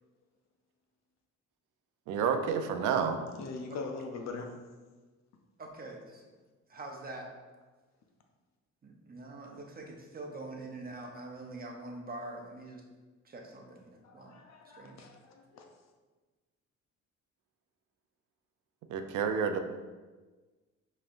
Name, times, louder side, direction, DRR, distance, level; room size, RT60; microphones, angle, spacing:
voice 1, 2.1-3.2 18.9-19.6, right 6 dB, 80° right, 6 dB, 0.5 m, -29 dB
voice 2, 3.4-4.5 14.0-15.7, left 4 dB, 60° left, 3 dB, 0.7 m, -42 dB
voice 3, 5.6-6.2 6.7-7.3 8.8-12.8 13.2-14.4 14.7-15.0, right 2 dB, 30° right, 1 dB, 0.8 m, -44 dB
5.4 x 3.2 x 2.5 m, 1.3 s
cardioid pair, 90°, 30 cm